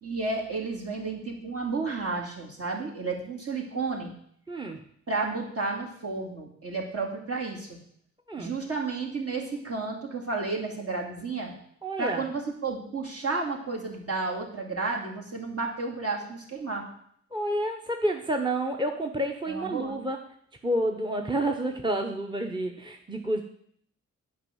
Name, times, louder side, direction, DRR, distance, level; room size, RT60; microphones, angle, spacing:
voice 1, 0.0-4.1 5.1-7.8 8.4-11.5 12.0-16.9 19.5-20.0, right 3 dB, 55° right, 0 dB, 2.7 m, -32 dB
voice 2, 4.5-4.8 8.3-8.7 11.8-12.2 17.3-20.2 20.6-23.4, right 1 dB, 15° right, 3 dB, 0.9 m, -29 dB
8.8 x 5.4 x 8.0 m, 0.66 s
cardioid pair, 80°, 29 cm